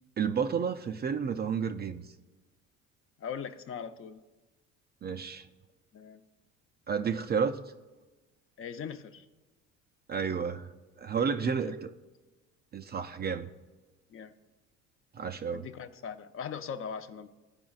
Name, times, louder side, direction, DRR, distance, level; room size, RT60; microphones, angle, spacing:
voice 1, 0.2-2.1 5.0-5.5 6.9-7.6 10.1-10.7 11.0-11.9 12.7-13.5 15.1-15.7, right 6 dB, 30° right, 0.4 m, -31 dB
voice 2, 3.2-4.2 5.9-6.2 8.6-9.3 11.5-11.7 14.1-14.3 15.5-17.3, left 7 dB, 40° left, 0.5 m, -40 dB
13.5 x 5.0 x 2.4 m
supercardioid pair, 70°, 35 cm